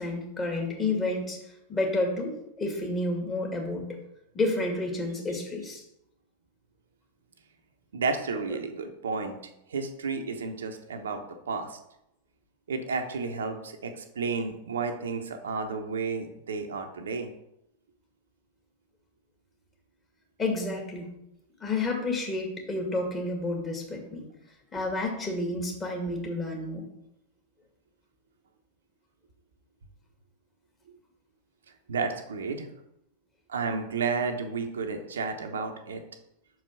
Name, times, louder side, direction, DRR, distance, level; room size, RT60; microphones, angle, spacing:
voice 1, 0.0-1.4 1.7-4.0 4.3-5.8 20.4-21.1 21.6-24.2 24.7-26.8, left 2 dB, 20° left, 0 dB, 2.3 m, -30 dB
voice 2, 7.9-9.4 9.7-11.8 12.7-17.3 31.9-32.7 33.5-36.0, right 4 dB, 65° right, 5 dB, 0.9 m, -32 dB
5.8 x 4.8 x 6.0 m, 0.81 s
figure-of-eight pair, 90°, 0 cm